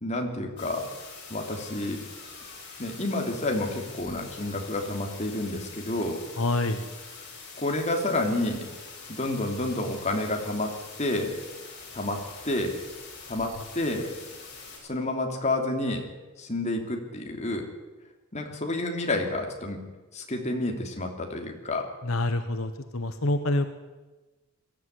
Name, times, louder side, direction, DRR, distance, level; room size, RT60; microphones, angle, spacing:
voice 1, 0.0-0.9 1.3-2.0 2.8-6.2 7.6-8.6 9.1-10.7 11.0-11.3 11.9-12.2 12.4-12.8 13.3-14.1 14.8-16.1 16.4-17.7 18.3-19.8 20.1-21.9, left 2 dB, 35° left, 2 dB, 3.1 m, -29 dB
sound 1, 0.6-14.8, left 4 dB, 55° left, 7.5 m, -44 dB
voice 2, 6.4-6.9 13.6-13.7 22.0-23.7, left 2 dB, 75° left, 8 dB, 1.3 m, -27 dB
22.0 x 14.0 x 9.7 m, 1.2 s
head